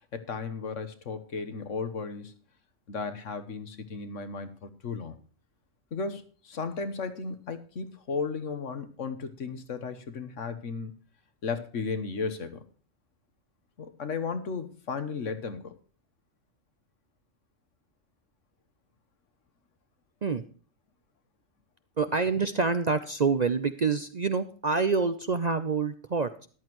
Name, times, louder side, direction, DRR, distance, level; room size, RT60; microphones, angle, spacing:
voice 1, 0.1-2.4 2.9-5.1 5.9-10.9 11.4-12.6 13.8-15.8, left 4 dB, 70° left, 9 dB, 1.5 m, -35 dB
voice 2, 22.0-26.5, right 4 dB, 45° right, 10 dB, 0.6 m, -27 dB
14.0 x 11.0 x 3.1 m, 0.42 s
omnidirectional pair, 1.3 m